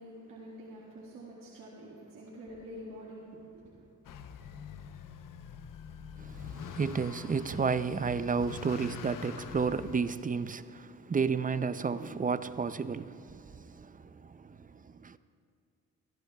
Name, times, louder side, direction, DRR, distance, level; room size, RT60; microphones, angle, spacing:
voice 1, 0.0-3.9, equal, 85° right, 1.9 m, -47 dB
Motor vehicle (road) / Accelerating revving vroom, 4.0-10.0, left 7 dB, 75° left, 0.8 m, -44 dB
voice 2, 6.2-15.2, right 5 dB, 25° right, 0.4 m, -32 dB
21.5 x 15.0 x 2.3 m
cardioid pair, 75°, 33 cm